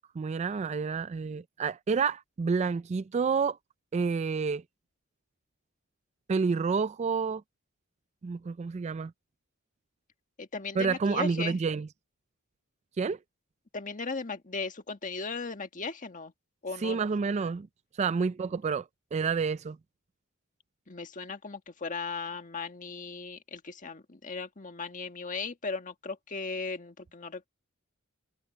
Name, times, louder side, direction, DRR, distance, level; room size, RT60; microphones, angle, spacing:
voice 1, 0.2-3.6 3.9-4.6 6.3-7.4 8.2-9.1 10.8-11.9 13.0-13.2 16.8-17.7 18.0-18.9 19.1-19.8, right 5 dB, 35° right, 0.3 m, -29 dB
voice 2, 10.4-11.6 13.7-16.3 16.6-17.0 20.9-27.5, left 4 dB, 40° left, 1.6 m, -37 dB
head